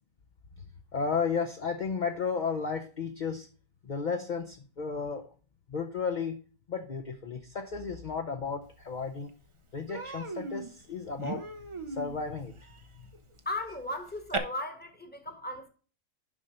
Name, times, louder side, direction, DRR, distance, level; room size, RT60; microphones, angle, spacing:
voice 1, 0.9-3.5 3.8-5.3 5.7-6.4 6.7-9.3 9.7-11.5 11.9-12.5 13.0-13.1, left 5 dB, 45° left, 0.6 m, -33 dB
Human voice, 8.9-9.0 9.3-9.5 9.9-14.4, right 3 dB, 40° right, 0.4 m, -39 dB
voice 2, 13.4-15.7, left 1 dB, 5° left, 1.1 m, -36 dB
7.3 x 5.5 x 5.0 m
omnidirectional pair, 1.7 m